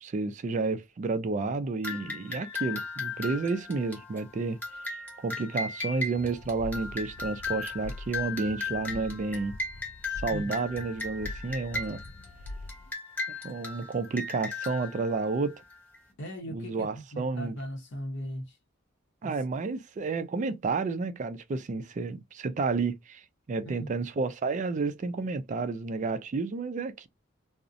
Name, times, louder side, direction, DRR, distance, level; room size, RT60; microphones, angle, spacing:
voice 1, 0.0-4.6 5.2-9.5 10.2-12.0 13.4-15.6 16.5-17.6 19.2-23.2 23.5-27.1, right 3 dB, 35° right, 0.3 m, -31 dB
sound 1, 1.8-16.0, left 3 dB, 10° left, 0.8 m, -37 dB
sound 2, 6.2-12.9, left 2 dB, 45° left, 0.3 m, -44 dB
voice 2, 16.2-18.6 19.2-19.4 23.6-23.9, equal, 60° left, 0.7 m, -38 dB
2.5 x 2.0 x 2.5 m
head